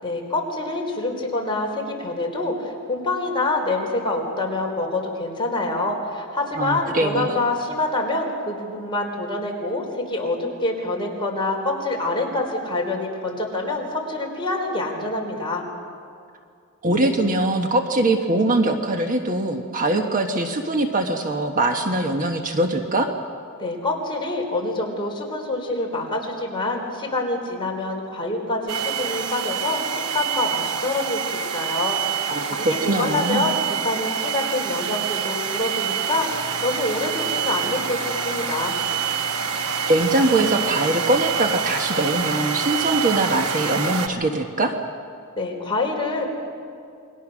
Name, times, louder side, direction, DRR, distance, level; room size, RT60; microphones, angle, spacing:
voice 1, 0.0-15.6 23.6-38.0 38.2-38.7 45.4-46.3, left 2 dB, 25° left, -1 dB, 4.2 m, -26 dB
voice 2, 6.6-7.4 16.8-23.1 32.3-33.5 39.9-44.8, right 2 dB, 40° right, 4 dB, 1.4 m, -22 dB
sound 1, 28.7-44.1, right 8 dB, 80° right, 1.2 m, -27 dB
sound 2, 36.3-44.3, left 3 dB, 40° left, 4.9 m, -37 dB
28.5 x 22.0 x 6.3 m, 2.3 s
head